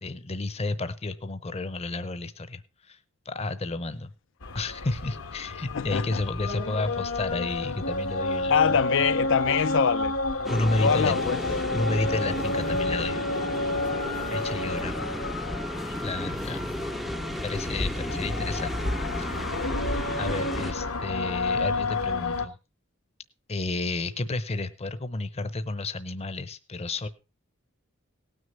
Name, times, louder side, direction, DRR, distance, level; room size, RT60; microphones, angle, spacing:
voice 1, 0.0-3.0 3.2-4.1 4.5-8.8 9.5-9.6 10.5-11.1 11.7-13.2 14.3-15.0 16.0-16.7 17.4-18.8 19.2-19.5 20.2-22.6 23.5-27.1, left 2 dB, 30° left, 0.8 m, -31 dB
sound 1, 4.4-22.5, left 2 dB, 85° left, 1.4 m, -30 dB
voice 2, 5.7-6.2 8.5-10.1 10.8-11.4 14.7-14.8, left 6 dB, 65° left, 0.5 m, -24 dB
sound 2, 10.4-20.7, equal, ahead, 0.5 m, -35 dB
18.0 x 6.4 x 5.4 m
head